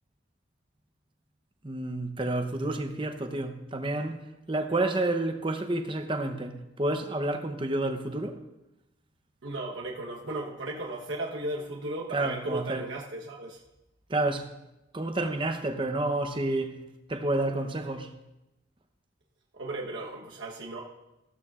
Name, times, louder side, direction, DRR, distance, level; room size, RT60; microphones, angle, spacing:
voice 1, 1.6-8.4 12.1-12.9 14.1-14.5 14.9-16.8 17.1-18.1, right 2 dB, 25° right, 0.8 m, -30 dB
voice 2, 9.4-13.6 19.6-20.8, right 2 dB, 80° right, 1.1 m, -35 dB
15.0 x 13.0 x 2.5 m
head